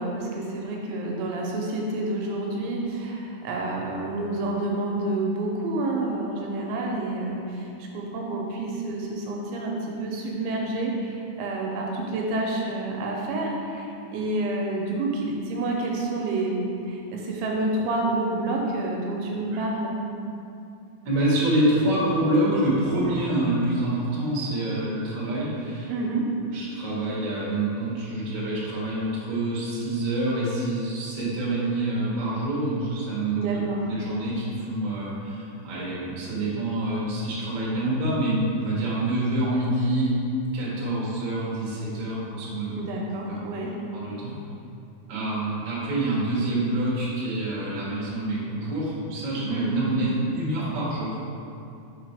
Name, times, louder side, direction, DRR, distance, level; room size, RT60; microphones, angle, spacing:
voice 1, 0.0-19.9 25.9-26.2 33.4-33.8 42.8-43.7 49.5-50.0, right 2 dB, 85° right, -1 dB, 3.0 m, -29 dB
voice 2, 21.0-25.9 26.5-40.1 40.5-42.8 43.3-43.4 43.9-44.3 45.1-51.1, right 1 dB, 60° right, -7 dB, 2.0 m, -26 dB
6.6 x 4.0 x 4.9 m, 2.6 s
omnidirectional pair, 5.4 m